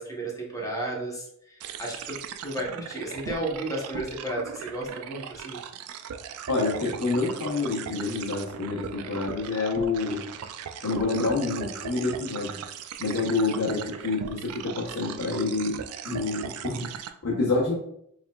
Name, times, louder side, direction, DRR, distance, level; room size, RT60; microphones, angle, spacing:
voice 1, 0.0-5.6, right 1 dB, 15° left, -2 dB, 0.9 m, -33 dB
sound 1, 1.6-17.1, right 8 dB, 70° right, 0.3 m, -39 dB
voice 2, 6.5-10.2 10.8-12.6 13.0-15.8 16.0-16.9 17.2-17.8, left 3 dB, 80° left, -5 dB, 1.0 m, -27 dB
4.8 x 3.5 x 2.3 m, 0.73 s
head